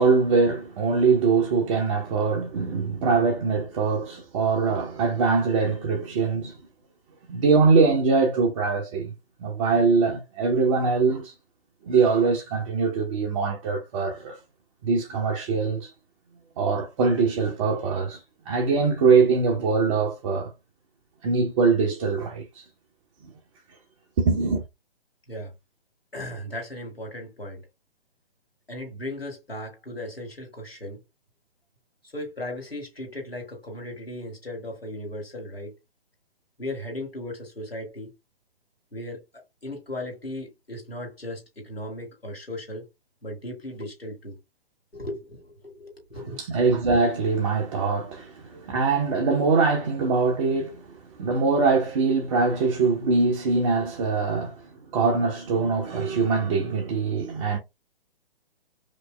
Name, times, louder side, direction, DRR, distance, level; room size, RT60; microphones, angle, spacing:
voice 1, 0.0-6.6 7.3-9.1 9.4-11.3 11.8-14.4 14.8-15.9 16.6-18.2 18.5-20.5 21.2-22.6 24.2-24.6 46.4-50.9 51.2-54.6 54.9-57.6, right 4 dB, 35° right, 0.9 m, -23 dB
voice 2, 26.1-27.6 28.7-31.0 32.1-35.7 36.6-38.1 38.9-39.2 39.6-42.9 43.2-44.4 44.9-46.4, left 1 dB, 90° left, 2.3 m, -36 dB
5.1 x 2.0 x 3.4 m
figure-of-eight pair, 125°, 29 cm